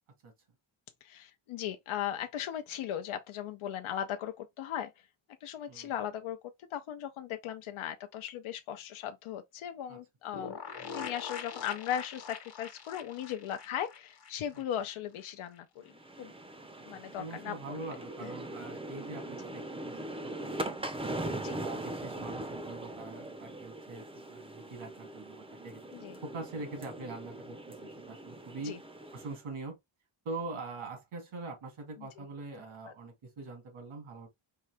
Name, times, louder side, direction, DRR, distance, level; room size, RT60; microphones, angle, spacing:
voice 1, 1.0-4.9 5.4-6.4 6.7-10.6 10.9-15.8 16.2-16.3 16.9-17.9 18.2-18.3 21.4-21.6 25.9-26.2 28.6-28.8 32.2-32.3 32.9-33.0, left 10 dB, 80° left, 0.6 m, -38 dB
sound 1, 10.3-14.9 15.2-15.3 15.5-15.6, left 6 dB, 55° left, 1.2 m, -43 dB
sound 2, 15.9-29.4, right 1 dB, 10° right, 0.5 m, -41 dB
voice 2, 16.9-20.3 21.0-21.2 21.6-25.8 26.2-28.8 29.1-29.7 30.3-34.3, right 3 dB, 85° right, 2.2 m, -43 dB
4.6 x 2.7 x 3.3 m
cardioid pair, 110°, 48 cm